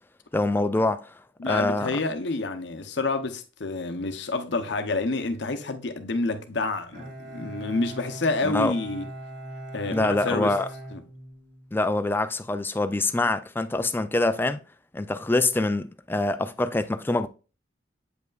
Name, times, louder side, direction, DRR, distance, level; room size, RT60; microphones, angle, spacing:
voice 1, 0.3-1.1 1.5-1.9 8.4-8.7 9.9-10.7 11.7-14.6 14.9-17.3, left 2 dB, 10° left, 0.3 m, -25 dB
voice 2, 1.4-9.1 9.7-10.6 10.9-11.0, left 3 dB, 60° left, 0.7 m, -28 dB
Bowed string instrument, 6.9-11.8, right 1 dB, 50° right, 1.9 m, -40 dB
7.9 x 5.4 x 2.4 m
head